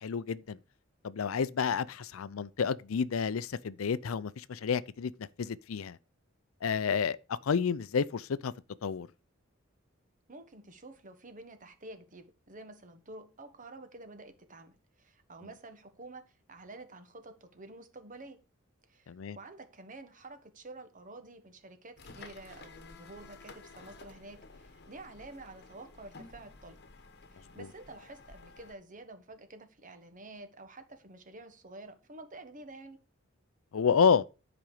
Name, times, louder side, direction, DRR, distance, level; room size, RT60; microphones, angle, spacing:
voice 1, 0.0-0.6 1.0-5.1 5.4-6.0 6.6-8.5 8.8-9.1 19.1-19.4 33.7-34.2, left 6 dB, 80° left, 0.5 m, -30 dB
voice 2, 10.3-18.4 18.9-26.8 27.3-33.0, right 2 dB, 40° right, 1.3 m, -49 dB
sound 1, 22.0-28.7, left 3 dB, 55° left, 1.2 m, -52 dB
10.5 x 5.2 x 4.9 m
head